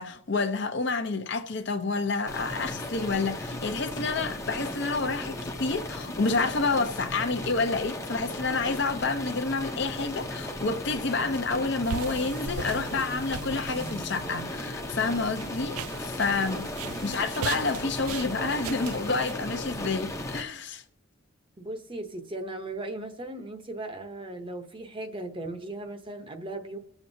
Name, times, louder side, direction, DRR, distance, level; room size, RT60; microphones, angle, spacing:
voice 1, 0.0-16.7 17.0-20.8, left 3 dB, 55° left, 0.7 m, -29 dB
sound 1, 2.3-20.4, left 1 dB, 15° left, 0.7 m, -36 dB
sound 2, 11.8-19.3, right 10 dB, 80° right, 0.3 m, -40 dB
voice 2, 16.4-17.2 21.6-26.8, right 2 dB, 25° right, 0.8 m, -38 dB
20.0 x 7.1 x 2.7 m
head